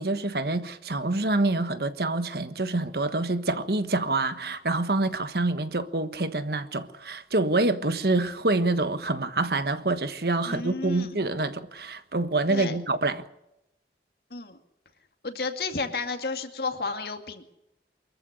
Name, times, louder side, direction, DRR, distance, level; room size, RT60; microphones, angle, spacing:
voice 1, 0.0-13.2, right 2 dB, 60° right, 1.3 m, -26 dB
voice 2, 10.5-11.1 12.5-12.8 14.3-14.6 15.2-17.4, left 3 dB, 60° left, 2.3 m, -32 dB
24.0 x 14.5 x 8.4 m
head